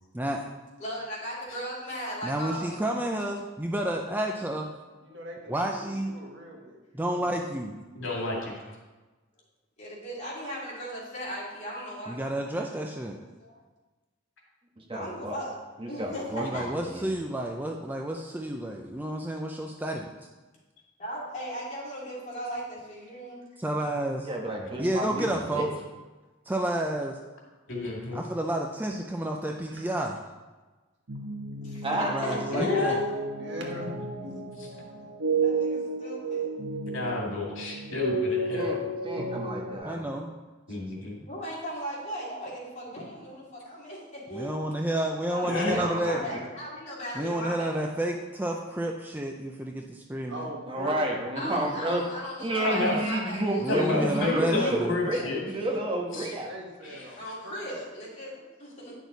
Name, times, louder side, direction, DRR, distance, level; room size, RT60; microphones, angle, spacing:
voice 1, 0.8-2.8 9.8-12.2 13.4-13.6 14.9-15.6 15.9-16.7 21.0-23.4 31.6-33.2 35.4-36.5 41.3-44.8 45.3-47.9 51.3-54.7 57.1-58.9, equal, 40° left, -6 dB, 2.9 m, -37 dB
voice 2, 2.2-4.7 5.5-6.1 6.9-7.8 12.1-13.2 16.3-20.1 23.6-24.3 24.8-25.7 26.5-27.2 28.1-30.2 32.1-33.0 39.8-40.3 44.3-46.2 47.2-50.5 53.6-55.0, right 1 dB, 10° right, 1 dB, 0.4 m, -30 dB
voice 3, 5.0-6.8 7.2-7.4 29.7-29.8 33.4-34.5 50.3-51.1 56.2-57.8, equal, 65° right, 0 dB, 1.6 m, -41 dB
voice 4, 7.9-8.6 27.7-28.2 32.5-33.0 36.9-38.7 40.7-41.2 45.4-45.8 52.6-53.0 53.7-55.4 56.1-56.3 56.8-57.1, left 3 dB, 90° left, -2 dB, 2.4 m, -30 dB
voice 5, 14.8-15.4 15.8-17.1 24.3-25.7 31.8-32.4 38.5-40.0 45.4-46.2 50.7-52.0 52.4-56.5, right 1 dB, 25° right, 0 dB, 1.3 m, -31 dB
sound 1, 31.1-39.8, right 3 dB, 85° right, 1.0 m, -32 dB
9.9 x 6.3 x 4.0 m, 1.2 s
head